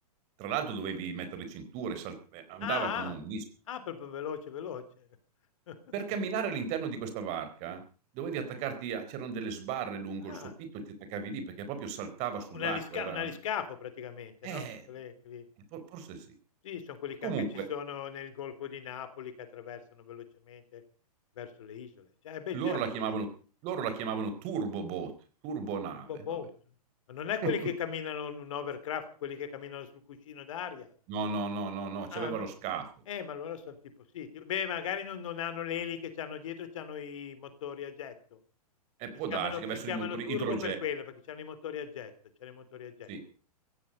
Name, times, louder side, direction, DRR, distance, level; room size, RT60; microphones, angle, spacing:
voice 1, 0.4-3.4 5.9-7.8 8.1-10.8 11.1-13.3 14.4-14.8 15.7-16.3 17.2-17.7 22.5-23.3 23.6-25.1 25.4-26.4 27.4-27.5 31.1-32.9 39.0-40.8 43.1-43.2, right 6 dB, 35° right, 9 dB, 4.2 m, -35 dB
voice 2, 2.6-3.1 3.7-5.1 5.7-5.8 8.4-8.5 10.2-10.5 12.5-15.4 16.6-17.3 17.7-20.8 21.4-22.8 26.1-26.5 27.1-30.9 32.1-32.5 33.1-33.8 34.1-38.4 39.3-42.1 42.4-43.1, left 8 dB, 55° left, 11 dB, 3.3 m, -38 dB
17.5 x 15.5 x 5.3 m, 0.39 s
figure-of-eight pair, 105°, 20 cm